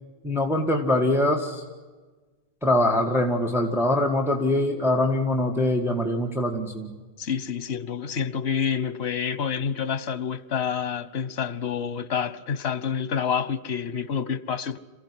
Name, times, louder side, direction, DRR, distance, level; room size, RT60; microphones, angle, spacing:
voice 1, 0.2-1.6 2.6-6.9, left 1 dB, ahead, 1.8 m, -23 dB
voice 2, 7.2-14.8, left 7 dB, 90° left, 1.2 m, -28 dB
27.5 x 15.5 x 9.9 m
omnidirectional pair, 1.1 m